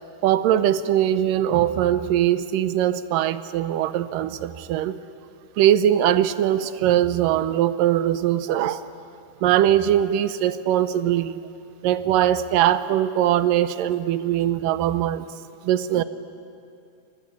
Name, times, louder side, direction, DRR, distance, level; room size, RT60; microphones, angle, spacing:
voice 1, 0.2-5.0 5.6-8.9 9.4-11.4 11.8-15.3 15.6-16.0, right 11 dB, 85° right, 13 dB, 2.5 m, -21 dB
29.5 x 24.5 x 8.3 m, 2.5 s
omnidirectional pair, 3.8 m